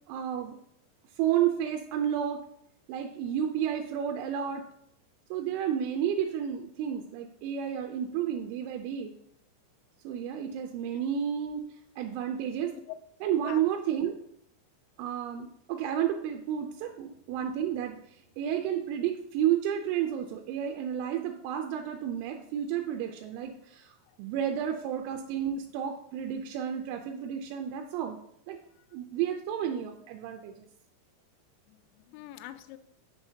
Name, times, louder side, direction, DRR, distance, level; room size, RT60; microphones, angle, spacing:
voice 1, 0.1-0.6 1.2-2.4 2.9-4.6 5.3-9.2 10.0-11.7 12.0-12.7 13.2-14.1 15.0-18.0 18.4-28.2 28.5-28.6 28.9-30.7, right 9 dB, 85° right, 4 dB, 3.0 m, -31 dB
voice 2, 31.7-32.8, left 14 dB, 85° left, 9 dB, 2.7 m, -45 dB
7.1 x 7.1 x 2.7 m, 0.74 s
omnidirectional pair, 5.5 m